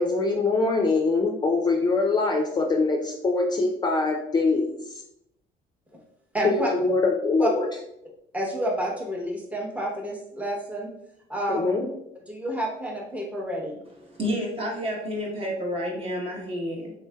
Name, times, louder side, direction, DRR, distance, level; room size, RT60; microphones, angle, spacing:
voice 1, 0.0-4.8 6.4-7.7 11.5-11.9, left 3 dB, 25° left, 0.5 m, -23 dB
voice 2, 6.3-6.7 7.4-7.5 8.3-10.9 11.3-11.7 12.3-13.8, right 1 dB, 10° right, 0.8 m, -29 dB
voice 3, 14.1-16.9, equal, 35° right, 1.1 m, -30 dB
3.7 x 3.1 x 2.2 m
cardioid pair, 110°, 17 cm